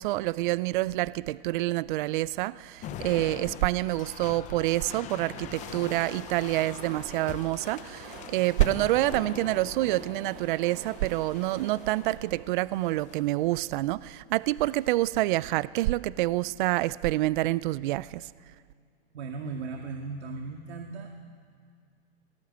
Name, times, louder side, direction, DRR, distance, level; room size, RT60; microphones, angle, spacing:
voice 1, 0.0-18.2, right 17 dB, 50° right, 20 dB, 0.5 m, -27 dB
sound 1, 2.8-12.2 12.9-13.4 14.5-15.2, left 11 dB, 20° left, 0.7 m, -43 dB
Train, 4.5-14.1, right 3 dB, 30° right, 6.2 m, -48 dB
voice 2, 19.1-21.1, right 4 dB, 80° right, 3 dB, 2.1 m, -37 dB
23.0 x 18.0 x 8.2 m, 2.2 s
hypercardioid pair, 145°, 32 cm